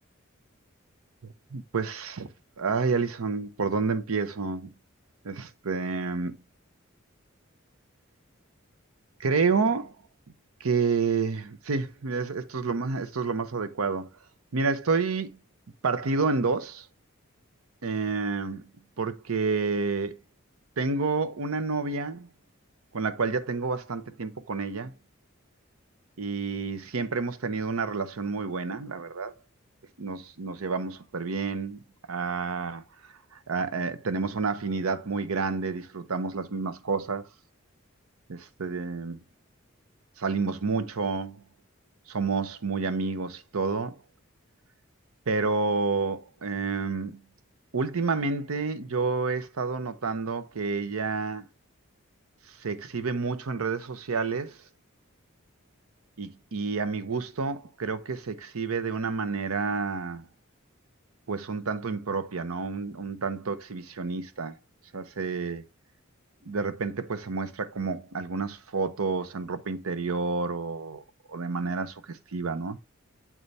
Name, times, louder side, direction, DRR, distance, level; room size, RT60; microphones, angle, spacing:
voice 1, 1.2-2.3 2.6-4.7 5.2-6.4 9.2-10.0 10.6-14.1 14.5-15.4 15.8-16.9 17.8-18.7 19.0-20.2 20.8-22.3 22.9-24.9 26.2-29.3 30.0-37.3 38.3-39.2 40.2-41.4 42.1-44.0 45.3-47.2 47.7-51.5 52.5-54.6 56.2-60.3 61.3-64.6 64.9-65.6 66.4-71.0 71.3-72.8, right 4 dB, 85° right, 0.7 m, -29 dB
7.5 x 4.1 x 3.2 m
head